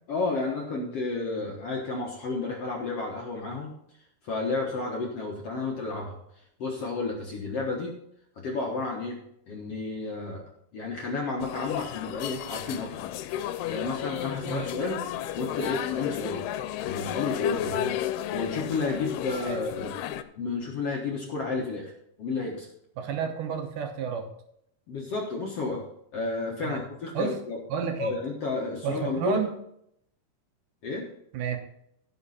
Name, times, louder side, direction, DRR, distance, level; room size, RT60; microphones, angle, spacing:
voice 1, 0.1-3.7 4.2-6.2 6.6-8.0 8.4-9.2 9.5-10.4 10.7-12.9 13.7-15.0 15.3-16.4 16.8-17.8 18.3-20.0 20.4-21.9 22.2-22.7 24.9-25.8 26.1-27.6 28.0-29.5 30.8-31.1, left 3 dB, 60° left, -1 dB, 1.6 m, -31 dB
sound 1, 11.4-20.2, left 11 dB, 85° left, 2.6 m, -33 dB
voice 2, 23.0-24.3 26.6-26.8 27.1-27.3 27.7-28.1 28.8-29.5 31.3-31.6, right 7 dB, 65° right, 5 dB, 2.3 m, -30 dB
16.5 x 6.0 x 4.2 m, 0.74 s
omnidirectional pair, 4.6 m